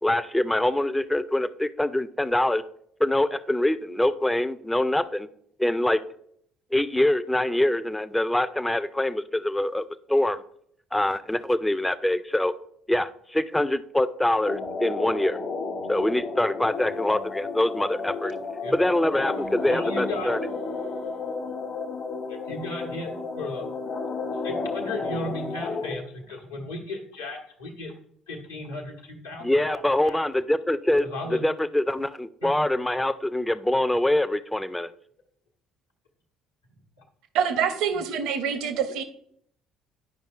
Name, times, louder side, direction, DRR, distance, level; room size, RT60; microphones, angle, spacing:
voice 1, 0.0-2.6 3.0-5.3 5.6-6.0 6.7-10.4 10.9-12.5 12.9-15.4 15.9-18.4 18.7-20.4 29.4-34.9, left 1 dB, 10° left, 0.4 m, -24 dB
sound 1, 14.4-26.0, left 3 dB, 50° left, 0.9 m, -32 dB
voice 2, 19.7-20.3 22.3-23.1 23.4-23.6 24.4-27.9 28.3-30.2 31.0-31.4 32.4-32.5, left 2 dB, 80° left, 1.0 m, -35 dB
voice 3, 37.3-39.0, right 7 dB, 60° right, 0.6 m, -26 dB
10.0 x 5.2 x 2.4 m
figure-of-eight pair, 50°, 0 cm